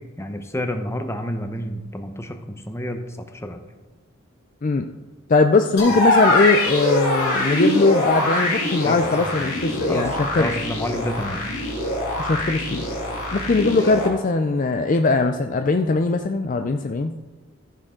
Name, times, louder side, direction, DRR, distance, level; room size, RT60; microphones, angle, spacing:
voice 1, 0.0-3.6 5.9-6.2 8.8-9.0 9.9-11.4 13.6-13.9, equal, 10° left, 6 dB, 0.7 m, -30 dB
voice 2, 5.3-10.5 12.2-12.9 13.3-17.1, left 3 dB, 35° left, 7 dB, 0.4 m, -20 dB
sound 1, 5.8-14.1, left 1 dB, 75° left, 2.9 m, -23 dB
14.5 x 6.4 x 3.7 m, 1.2 s
head